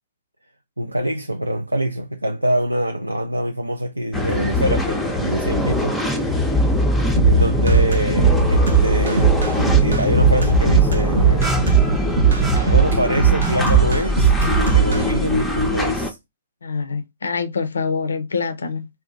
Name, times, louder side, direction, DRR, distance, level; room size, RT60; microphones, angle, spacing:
voice 1, 0.8-6.0 6.2-6.7 7.2-9.5 9.8-11.5 12.7-16.2, right 1 dB, 90° right, 0.3 m, -24 dB
sound 1, 4.1-16.1, left 2 dB, 5° left, 0.5 m, -21 dB
sound 2, 7.2-15.0, right 7 dB, 65° right, 0.7 m, -18 dB
voice 2, 16.6-18.9, left 5 dB, 70° left, 0.4 m, -25 dB
2.6 x 2.1 x 3.8 m
figure-of-eight pair, 115°, 0 cm